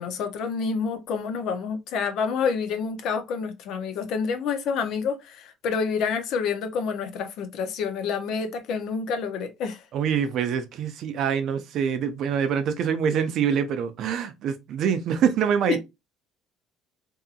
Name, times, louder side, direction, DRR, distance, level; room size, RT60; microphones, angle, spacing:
voice 1, 0.0-9.8 15.7-15.8, left 5 dB, 65° left, 0.5 m, -28 dB
voice 2, 9.9-15.8, right 7 dB, 60° right, 0.4 m, -25 dB
2.7 x 2.6 x 2.3 m
cardioid pair, 110°, 0 cm